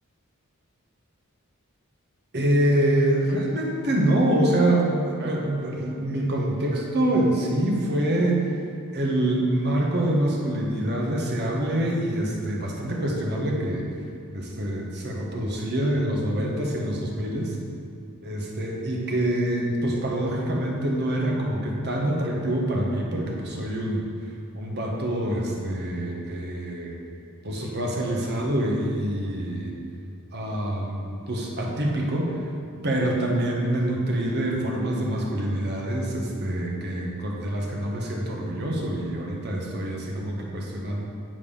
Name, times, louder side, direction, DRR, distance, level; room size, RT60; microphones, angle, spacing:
voice 1, 2.3-8.5 8.9-13.8 14.3-17.6 18.2-24.0 24.5-26.9 27.4-29.7 30.3-32.5 32.8-41.0, right 1 dB, 50° right, -1 dB, 1.4 m, -25 dB
9.3 x 5.4 x 5.6 m, 2.6 s
head